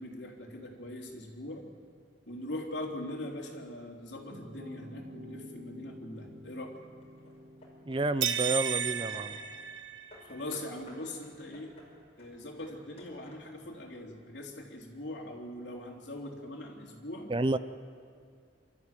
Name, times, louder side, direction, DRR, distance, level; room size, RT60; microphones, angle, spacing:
voice 1, 0.0-1.7 2.3-6.8 10.2-11.7 12.2-17.3, left 1 dB, 70° left, 0 dB, 3.5 m, -41 dB
sound 1, 4.3-9.8, equal, 60° right, 1.3 m, -51 dB
Hammer / Wood, 5.9-6.4 7.0-9.5 10.1-13.8, left 1 dB, 35° left, 5.3 m, -56 dB
voice 2, 7.9-9.4 17.3-17.6, right 2 dB, 25° right, 13 dB, 0.5 m, -30 dB
sound 2, 8.2-10.4, right 9 dB, 85° right, 1.2 m, -32 dB
27.5 x 13.5 x 9.1 m, 2.3 s
head